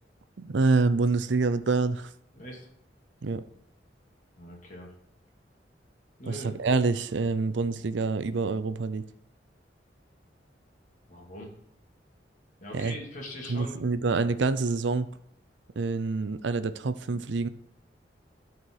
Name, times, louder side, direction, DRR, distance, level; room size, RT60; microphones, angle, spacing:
voice 1, 0.4-2.1 3.2-3.4 6.3-9.0 12.7-13.0 13.5-15.1 15.8-17.5, right 3 dB, 85° right, 13 dB, 0.5 m, -26 dB
voice 2, 2.3-2.7 4.3-4.9 6.2-6.6 11.1-11.5 12.6-13.8, left 1 dB, 45° left, -1 dB, 2.7 m, -41 dB
12.5 x 4.6 x 4.7 m, 0.69 s
head